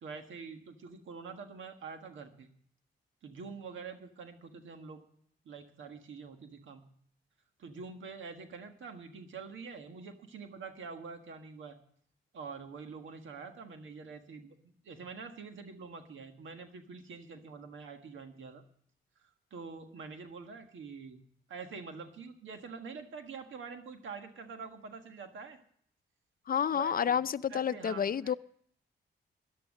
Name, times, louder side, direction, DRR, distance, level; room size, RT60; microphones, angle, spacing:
voice 1, 0.0-2.5 3.2-5.0 5.4-6.8 7.6-11.8 12.3-14.5 14.8-18.6 19.5-21.2 21.5-25.6 26.7-27.2 27.5-28.0, right 5 dB, 85° right, 1.6 m, -46 dB
voice 2, 26.5-28.3, left 8 dB, 50° left, 0.5 m, -30 dB
13.5 x 10.5 x 6.4 m
cardioid pair, 50°, 20 cm